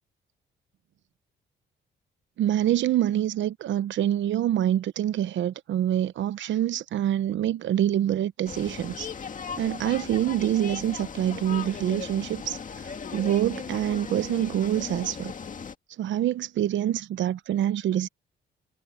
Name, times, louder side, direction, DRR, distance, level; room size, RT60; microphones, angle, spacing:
voice 1, 2.4-9.1 9.6-12.6 13.1-15.3 16.0-18.1, right 11 dB, 70° right, 0.9 m, -26 dB
sound 1, 8.5-15.8, left 6 dB, 40° left, 2.0 m, -37 dB
cardioid pair, 90°, 20 cm